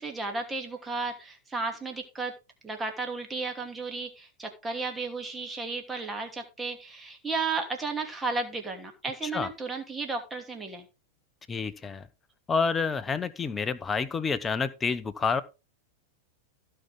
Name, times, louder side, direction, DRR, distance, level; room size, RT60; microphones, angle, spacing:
voice 1, 0.0-2.3 2.6-10.9, right 3 dB, 15° right, 2.8 m, -33 dB
voice 2, 11.5-12.1 12.5-15.4, left 5 dB, 15° left, 1.0 m, -28 dB
16.0 x 5.7 x 3.7 m
figure-of-eight pair, 90°, 0 cm